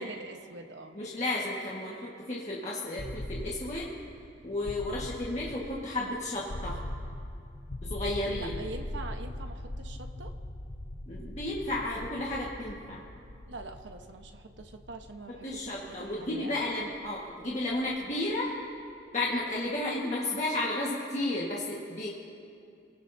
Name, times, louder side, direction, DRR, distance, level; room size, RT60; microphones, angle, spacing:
voice 1, 0.0-1.0 8.4-10.3 13.5-16.7, right 2 dB, 75° right, 5 dB, 1.2 m, -44 dB
voice 2, 0.9-3.9 4.4-6.8 7.8-8.6 11.1-13.0 15.4-18.5 19.1-22.1, left 1 dB, 40° left, -5 dB, 1.7 m, -33 dB
sound 1, 3.0-18.8, left 1 dB, 60° left, 0.9 m, -41 dB
28.0 x 17.5 x 2.8 m, 2.4 s
head